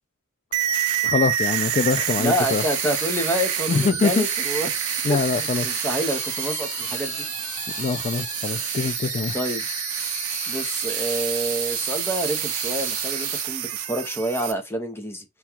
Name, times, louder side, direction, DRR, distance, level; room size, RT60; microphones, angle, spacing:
sound 1, 0.5-14.5, right 11 dB, 70° right, 0.5 m, -28 dB
voice 1, 1.0-2.6 3.7-4.2 5.0-5.6 7.8-9.4, left 4 dB, 35° left, 0.3 m, -24 dB
voice 2, 2.2-4.7 5.1-7.2 8.8-9.7 10.5-15.2, equal, 10° left, 0.8 m, -28 dB
sound 2, 2.4-13.5, left 7 dB, 55° left, 0.8 m, -37 dB
3.6 x 2.3 x 4.3 m
head